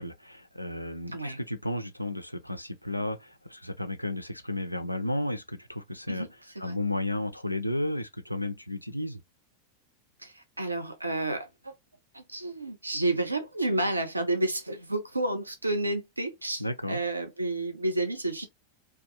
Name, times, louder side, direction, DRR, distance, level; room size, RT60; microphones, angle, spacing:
voice 1, 0.0-6.3 6.6-9.2 16.6-17.0, left 1 dB, 90° left, 0.4 m, -33 dB
voice 2, 6.1-6.7 10.2-11.7 12.1-18.5, right 2 dB, 85° right, 0.6 m, -31 dB
2.5 x 2.3 x 2.7 m
figure-of-eight pair, 90°, 0 cm